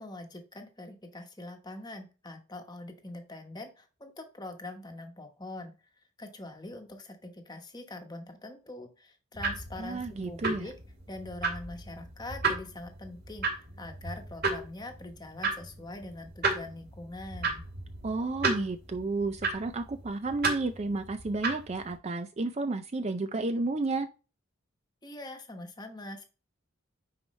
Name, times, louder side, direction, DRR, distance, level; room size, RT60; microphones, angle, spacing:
voice 1, 0.0-5.7 6.2-10.8 11.1-17.6 25.0-26.2, left 2 dB, 20° left, 5 dB, 1.1 m, -43 dB
sound 1, 9.3-22.0, right 3 dB, 45° right, 2.4 m, -35 dB
voice 2, 9.8-10.7 18.0-24.1, right 3 dB, 30° right, 9 dB, 0.4 m, -32 dB
9.4 x 4.7 x 3.2 m, 0.33 s
head